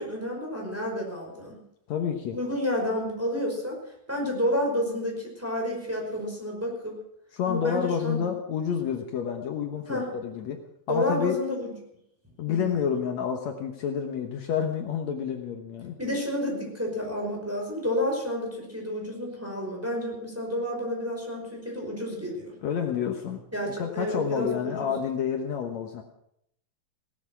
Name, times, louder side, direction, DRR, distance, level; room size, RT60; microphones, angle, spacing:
voice 1, 0.0-1.6 2.3-3.8 4.1-7.0 7.4-8.2 9.9-10.1 10.9-11.7 12.5-12.7 16.0-22.5 23.5-24.9, left 1 dB, 5° right, -1 dB, 5.1 m, -30 dB
voice 2, 1.9-2.4 7.3-10.6 10.9-11.4 12.4-15.9 22.6-23.4 23.8-26.0, left 7 dB, 65° left, 4 dB, 2.4 m, -29 dB
18.0 x 13.0 x 6.1 m, 0.74 s
omnidirectional pair, 3.5 m